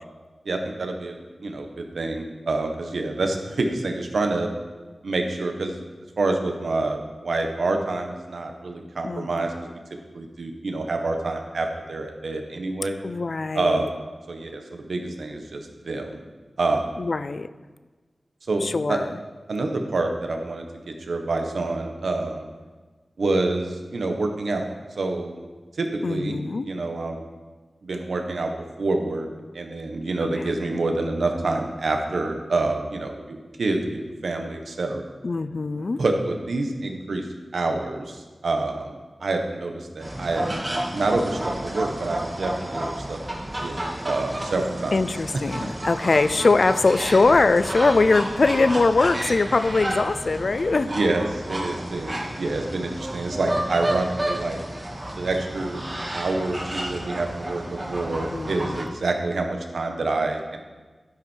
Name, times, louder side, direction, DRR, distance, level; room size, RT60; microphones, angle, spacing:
voice 1, 0.4-4.5 5.0-5.7 6.2-9.5 10.1-13.0 13.5-13.9 14.3-16.2 16.6-16.9 18.5-19.0 19.5-20.6 21.1-22.4 23.2-24.7 25.0-25.4 25.8-26.4 26.6-27.2 27.8-28.5 28.8-29.3 29.5-35.0 36.0-37.3 37.5-38.9 39.2-40.5 40.9-43.2 43.5-45.0 50.8-54.6 55.1-55.8 56.1-60.6, right 2 dB, 85° right, 4 dB, 1.4 m, -27 dB
voice 2, 9.0-9.5 13.0-13.9 17.0-17.5 18.6-19.2 26.0-26.7 35.2-36.0 44.9-50.9 58.3-58.9, left 3 dB, 60° left, 14 dB, 0.4 m, -22 dB
sound 1, 40.0-58.8, right 1 dB, 25° right, 2.2 m, -31 dB
11.0 x 10.5 x 4.6 m, 1.3 s
wide cardioid pair, 70°, 0 cm